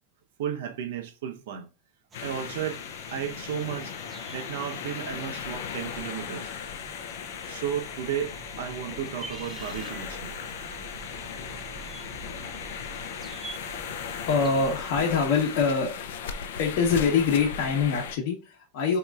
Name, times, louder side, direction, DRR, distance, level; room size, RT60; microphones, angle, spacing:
voice 1, 0.4-1.7 2.2-2.8 3.1-3.9 4.3-6.5 7.4-10.3, right 9 dB, 75° right, 0.8 m, -33 dB
sound 1, 2.1-18.2, left 7 dB, 85° left, 0.4 m, -37 dB
sound 2, 2.1-16.3, right 4 dB, 15° right, 0.4 m, -48 dB
sound 3, 6.4-14.7, right 6 dB, 35° right, 0.7 m, -49 dB
voice 2, 14.3-16.0 16.6-19.0, left 5 dB, 55° left, 0.9 m, -24 dB
4.1 x 2.9 x 2.4 m
supercardioid pair, 165°, 0 cm